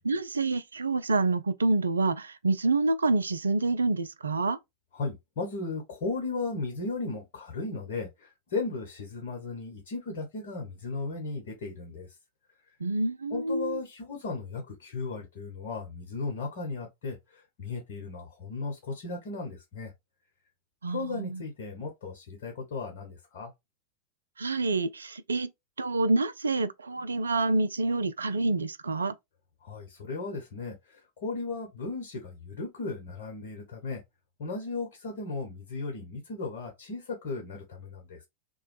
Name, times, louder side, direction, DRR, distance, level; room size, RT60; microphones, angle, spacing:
voice 1, 0.1-4.6 12.8-13.8 20.8-21.4 24.4-25.5 25.8-29.1, right 3 dB, 75° right, 0.3 m, -27 dB
voice 2, 4.9-12.1 13.3-19.9 20.9-23.5 29.6-34.0 34.4-38.2, left 3 dB, 55° left, 1.0 m, -36 dB
2.9 x 2.2 x 3.1 m
figure-of-eight pair, 90°, 0 cm